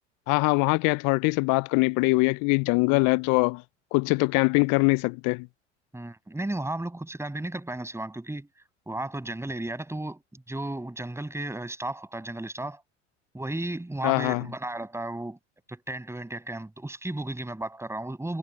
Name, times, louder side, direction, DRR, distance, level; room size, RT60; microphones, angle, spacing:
voice 1, 0.3-3.6 3.9-5.5 14.0-14.5, left 30 dB, 55° left, 0.6 m, -23 dB
voice 2, 5.9-8.5 8.9-12.8 13.3-15.4 15.7-18.4, right 1 dB, 5° right, 7.7 m, -34 dB
hypercardioid pair, 75°, 36 cm